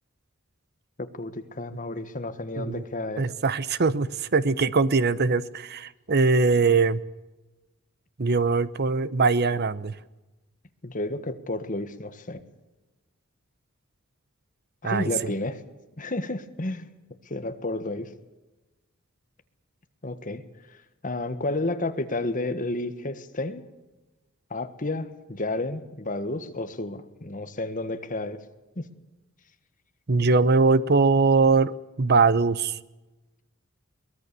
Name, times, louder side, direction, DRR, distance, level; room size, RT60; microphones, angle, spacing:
voice 1, 1.0-3.2 10.8-12.4 14.8-15.6 16.0-16.8 17.2-18.1 20.0-20.4 20.7-23.6 24.5-28.4 28.7-28.9, left 2 dB, 40° left, 9 dB, 1.5 m, -31 dB
voice 2, 3.2-7.0 8.2-9.9 14.8-15.1 30.1-32.8, right 4 dB, 50° right, 16 dB, 0.8 m, -22 dB
23.0 x 20.0 x 6.9 m, 1.1 s
head